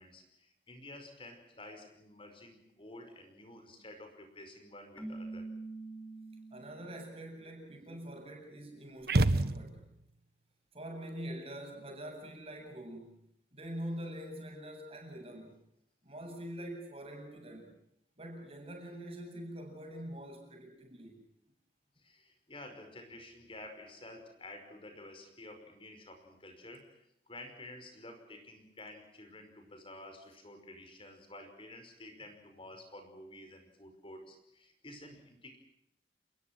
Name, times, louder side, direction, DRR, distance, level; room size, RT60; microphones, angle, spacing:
voice 1, 0.0-5.5 22.0-35.6, left 1 dB, 30° left, 5.3 m, -51 dB
Keyboard (musical), 5.0-7.0, right 2 dB, 10° left, 4.1 m, -44 dB
voice 2, 6.5-9.8 10.7-13.2 13.5-15.6 16.0-17.7 18.2-21.2, right 1 dB, 35° right, 8.0 m, -44 dB
sound 1, 9.1-10.1, right 2 dB, 60° right, 1.3 m, -28 dB
29.0 x 21.5 x 6.1 m
head